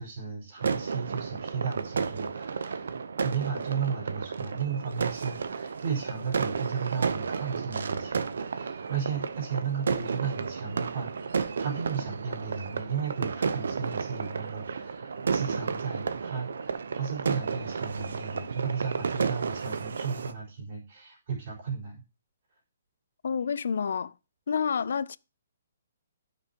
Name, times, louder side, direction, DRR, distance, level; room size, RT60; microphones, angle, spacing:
voice 1, 0.0-22.0, right 6 dB, 40° right, 4.1 m, -34 dB
sound 1, 0.6-20.3, right 5 dB, 75° right, 0.7 m, -32 dB
voice 2, 23.2-24.1 24.5-25.2, left 6 dB, 60° left, 0.3 m, -28 dB
13.5 x 5.9 x 2.9 m
hypercardioid pair, 180°, 0 cm